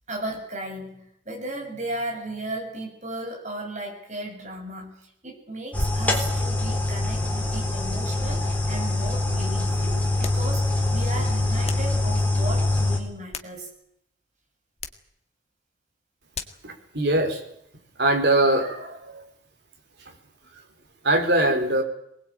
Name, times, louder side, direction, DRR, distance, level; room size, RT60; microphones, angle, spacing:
voice 1, 0.1-13.7, right 1 dB, 35° right, 1 dB, 7.3 m, -35 dB
sound 1, 5.7-13.0, left 2 dB, 10° left, 3.8 m, -24 dB
sound 2, 10.2-10.5 11.6-12.0 13.0-13.9 14.8-15.1 16.3-16.7, left 6 dB, 30° left, 1.8 m, -38 dB
voice 2, 16.6-17.4 18.0-19.2 21.0-21.8, right 1 dB, 55° right, 3 dB, 4.5 m, -22 dB
22.5 x 20.0 x 8.9 m, 0.76 s
head